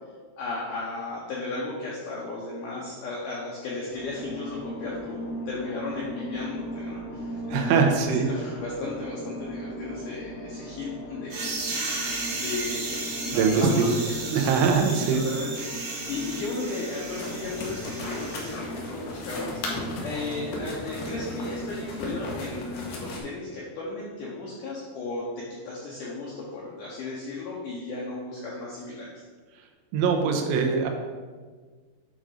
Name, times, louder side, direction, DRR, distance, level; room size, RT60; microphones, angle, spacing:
voice 1, 0.4-11.5 12.3-29.1, left 3 dB, 85° left, -4 dB, 1.8 m, -35 dB
sound 1, 3.9-22.3, equal, 50° left, 2.6 m, -38 dB
voice 2, 7.5-8.3 13.3-14.0 14.3-15.2 29.9-30.9, right 5 dB, 90° right, 3 dB, 3.1 m, -22 dB
sound 2, 11.3-18.5, right 3 dB, 65° right, 1.8 m, -34 dB
sound 3, 17.1-23.2, left 2 dB, 65° left, 2.1 m, -36 dB
8.7 x 3.8 x 4.9 m, 1.5 s
omnidirectional pair, 5.0 m